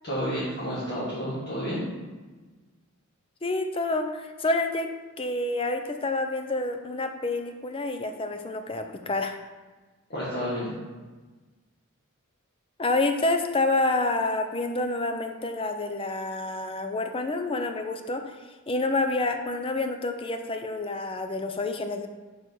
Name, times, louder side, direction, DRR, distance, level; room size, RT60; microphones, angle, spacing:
voice 1, 0.0-1.8 10.1-10.7, equal, 50° left, -10 dB, 1.9 m, -30 dB
voice 2, 3.4-4.9 5.2-9.4 12.8-18.3 18.7-22.1, left 2 dB, 25° left, 6 dB, 0.5 m, -28 dB
5.0 x 4.9 x 6.2 m, 1.3 s
head